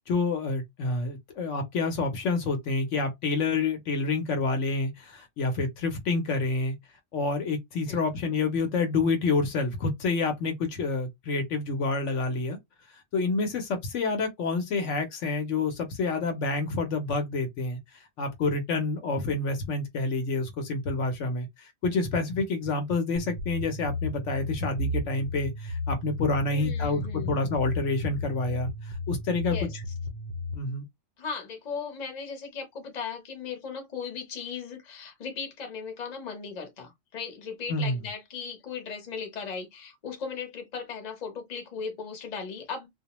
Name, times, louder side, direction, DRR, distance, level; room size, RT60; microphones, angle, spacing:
voice 1, 0.1-6.7 7.1-12.6 13.1-17.8 18.2-29.8 30.5-30.8 37.7-38.0, left 3 dB, 65° left, 0.9 m, -28 dB
sound 1, 23.2-30.6, left 2 dB, 60° right, 0.5 m, -34 dB
voice 2, 26.5-27.4 29.5-29.8 31.2-42.9, left 5 dB, 35° left, 0.8 m, -37 dB
2.3 x 2.1 x 2.9 m
omnidirectional pair, 1.4 m